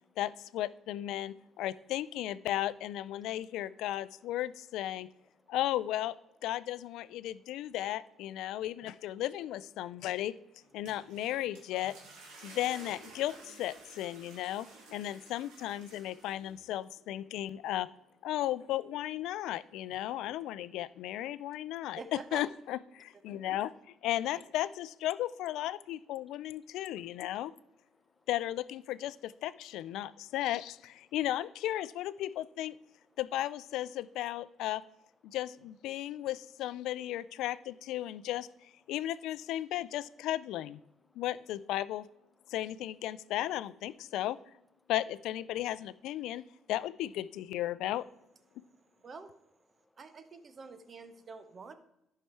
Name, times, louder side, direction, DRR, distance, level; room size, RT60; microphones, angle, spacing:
voice 1, 0.2-5.1 5.5-10.4 10.7-11.9 12.4-17.9 18.2-23.7 24.0-27.5 28.3-32.8 33.2-34.8 35.2-38.5 38.9-40.8 41.2-42.1 42.5-44.4 44.9-48.1 48.6-48.7, left 13 dB, 80° left, 17 dB, 0.3 m, -35 dB
voice 2, 5.2-5.6 7.2-7.7 8.5-8.7 9.8-10.1 10.8-10.9 12.4-12.6 15.0-15.3 16.2-16.3 17.3-17.5 20.7-20.8 21.3-22.0 23.3-23.5 26.2-26.4 26.7-27.0 27.3-27.4 27.9-28.3 30.0-30.3 32.9-33.2 35.3-35.4 35.9-36.3 41.1-41.2 42.5-42.6 44.1-44.2 44.8-44.9 46.2-46.7 48.5-49.1 49.7-50.0, left 2 dB, 10° left, 7 dB, 1.1 m, -73 dB
sound 1, 10.6-16.7, right 3 dB, 90° right, 2.1 m, -53 dB
voice 3, 22.0-22.5 49.0-49.3 50.0-51.7, right 4 dB, 40° right, 10 dB, 1.0 m, -47 dB
11.0 x 5.7 x 4.7 m, 0.86 s
cardioid pair, 85°, 0 cm